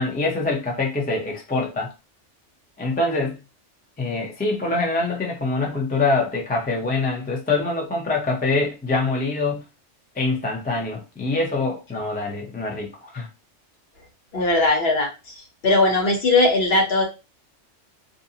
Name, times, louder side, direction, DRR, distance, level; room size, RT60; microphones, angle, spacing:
voice 1, 0.0-1.9 2.8-3.4 4.0-9.6 10.2-13.3, left 3 dB, 15° left, 0.3 m, -24 dB
voice 2, 14.3-17.0, left 2 dB, 60° left, 1.0 m, -19 dB
2.5 x 2.1 x 2.7 m
omnidirectional pair, 1.3 m